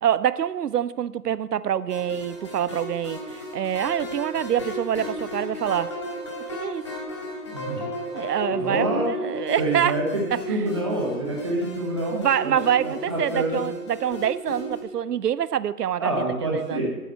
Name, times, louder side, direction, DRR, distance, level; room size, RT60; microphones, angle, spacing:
voice 1, 0.0-5.9 6.5-6.9 8.1-10.0 10.3-10.4 12.1-16.1 16.4-16.9, right 10 dB, 90° right, 17 dB, 0.5 m, -26 dB
sound 1, 1.9-14.8, equal, 20° left, 1.2 m, -34 dB
voice 2, 7.5-7.9 8.6-9.1 9.6-10.2 10.5-12.5 12.8-13.6 16.0-16.9, right 2 dB, 20° right, -1 dB, 1.1 m, -27 dB
9.2 x 5.1 x 7.9 m, 1.1 s
figure-of-eight pair, 165°, 46 cm